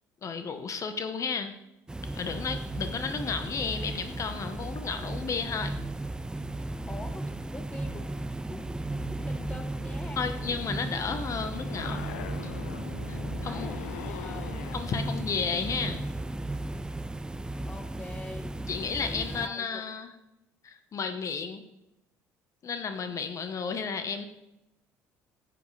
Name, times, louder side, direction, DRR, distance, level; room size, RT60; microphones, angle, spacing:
voice 1, 0.2-1.6 2.1-5.8 10.2-12.0 12.4-12.5 13.1-13.7 14.7-16.0 18.7-20.1 20.6-21.6 22.6-24.3, left 5 dB, 45° left, 9 dB, 0.9 m, -33 dB
sound 1, 1.9-19.5, right 2 dB, 10° right, 0.5 m, -35 dB
voice 2, 6.7-8.1 8.5-10.4 13.4-14.6 17.7-18.6 19.0-19.8, left 2 dB, 15° left, 8 dB, 0.9 m, -44 dB
sound 2, 10.4-16.0, left 11 dB, 85° left, 0.5 m, -43 dB
11.0 x 8.0 x 3.2 m, 0.92 s
hypercardioid pair, 65°, 8 cm